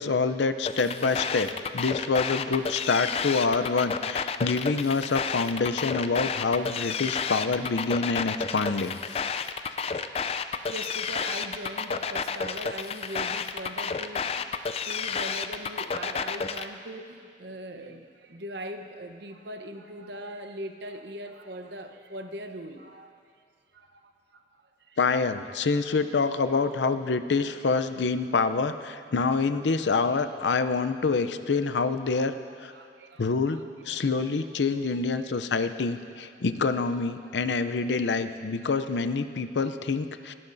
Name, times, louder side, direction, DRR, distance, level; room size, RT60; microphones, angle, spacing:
voice 1, 0.0-9.0 9.2-9.3 25.0-32.4 32.6-32.7 33.2-33.6 33.8-40.3, left 4 dB, 85° left, 11 dB, 0.6 m, -26 dB
sound 1, 0.7-16.7, left 5 dB, 35° left, 0.4 m, -31 dB
voice 2, 10.2-23.2 23.7-25.0 25.6-25.9 27.5-27.6 32.4-33.6 33.9-34.2 34.7-34.8 35.1-35.4, right 1 dB, 75° right, 6 dB, 0.9 m, -41 dB
20.0 x 17.0 x 2.7 m, 2.2 s
head